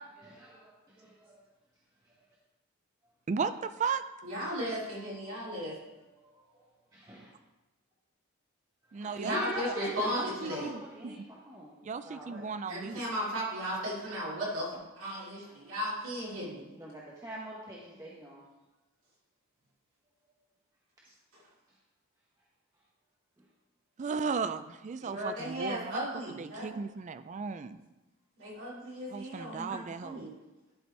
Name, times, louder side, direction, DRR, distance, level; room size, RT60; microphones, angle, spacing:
voice 1, 0.2-1.4 2.0-2.1 5.0-7.3 8.8-11.7 12.0-12.4 15.4-15.5 16.3-16.4 16.7-18.4 23.4-23.5, equal, 15° right, -5 dB, 0.9 m, -44 dB
voice 2, 3.3-4.0 8.9-9.4 9.7-9.8 10.1-11.3 11.8-13.0 24.0-27.8 29.1-30.3, right 5 dB, 35° right, 12 dB, 0.3 m, -36 dB
voice 3, 4.2-5.7 9.2-10.7 12.7-14.7 15.0-16.7 25.0-26.7 28.4-30.3, equal, 60° right, -6 dB, 2.8 m, -35 dB
11.5 x 4.2 x 4.5 m, 1.1 s
head